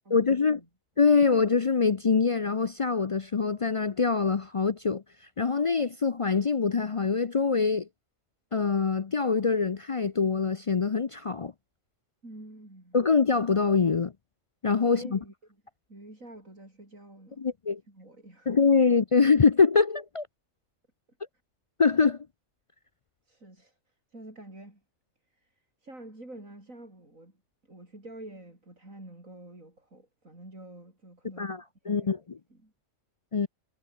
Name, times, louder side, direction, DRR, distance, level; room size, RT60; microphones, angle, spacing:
voice 1, 0.1-0.6 1.0-5.0 5.4-7.9 8.5-11.5 12.9-14.1 14.6-15.2 17.4-17.8 18.5-20.3 21.8-22.2 31.4-32.2 33.3-33.5, left 5 dB, 45° left, 0.4 m, -24 dB
voice 2, 12.2-13.0 15.0-15.3 15.9-17.4 17.9-18.5 23.2-23.8 24.1-24.8 25.3-25.5 25.8-27.4 27.7-31.6 31.8-32.1 32.5-32.7, right 1 dB, 90° right, 8.4 m, -47 dB
omnidirectional pair, 1.4 m